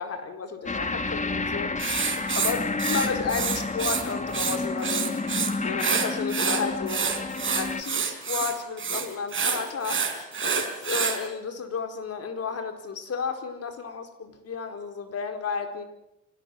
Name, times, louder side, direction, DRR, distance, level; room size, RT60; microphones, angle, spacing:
voice 1, 0.0-5.1 5.6-7.0 7.6-15.8, left 5 dB, 55° left, 6 dB, 4.6 m, -33 dB
sound 1, 0.7-7.8, left 3 dB, 25° left, 2.2 m, -30 dB
Writing, 1.8-4.0 4.3-5.5 5.8-11.2, right 6 dB, 40° right, 4.7 m, -27 dB
25.0 x 18.0 x 9.3 m, 0.85 s
cardioid pair, 90°, 30 cm